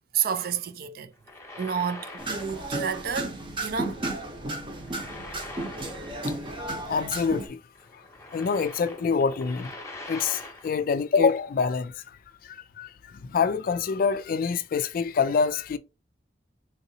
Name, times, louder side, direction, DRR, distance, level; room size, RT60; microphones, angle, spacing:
voice 1, 0.1-1.1 1.6-4.0, right 7 dB, 55° right, 0.4 m, -30 dB
sound 1, 1.1-2.8 3.1-3.3 4.6-6.5 6.8-6.9 7.7-10.8, left 2 dB, 15° left, 0.8 m, -43 dB
sound 2, 2.2-7.5, right 2 dB, 30° right, 0.8 m, -33 dB
voice 2, 6.9-7.6 8.3-9.7 10.1-12.0 12.4-15.8, left 5 dB, 55° left, 0.3 m, -26 dB
3.8 x 2.7 x 2.7 m
head